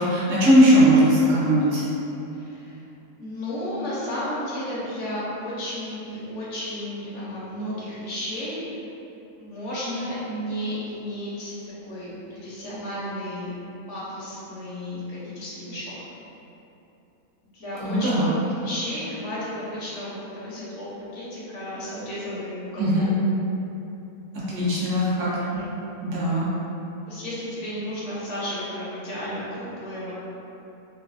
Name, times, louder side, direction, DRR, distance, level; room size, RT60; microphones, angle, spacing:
voice 1, 0.0-1.9 17.8-18.3 22.8-23.1 24.3-25.3 26.0-26.5, equal, 65° right, -8 dB, 1.0 m, -19 dB
voice 2, 2.3-2.8 3.2-8.8 9.4-11.5 11.8-13.5 13.9-15.9 17.5-18.4 18.6-20.9 21.1-23.1 25.4-25.7 27.1-30.2, left 1 dB, 65° left, -8 dB, 0.9 m, -33 dB
3.1 x 2.2 x 2.4 m, 2.9 s
omnidirectional pair, 1.5 m